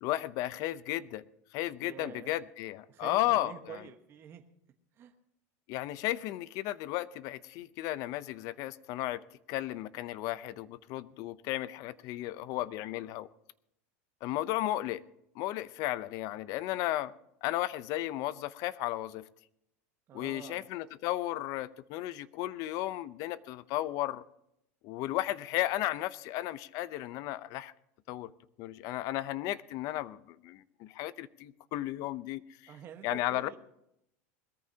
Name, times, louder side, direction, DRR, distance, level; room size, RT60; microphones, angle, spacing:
voice 1, 0.0-1.2 1.5-3.8 5.7-13.3 14.2-15.0 15.4-17.1 17.4-19.3 20.1-24.2 24.8-27.7 28.1-28.3 28.6-32.7 33.0-33.6, left 15 dB, 50° left, 16 dB, 0.7 m, -34 dB
voice 2, 1.8-2.4 2.9-4.4 5.0-5.1 20.1-20.7 32.7-33.6, right 8 dB, 30° right, 4 dB, 1.3 m, -47 dB
21.0 x 14.0 x 2.9 m, 0.78 s
supercardioid pair, 140°, 8 cm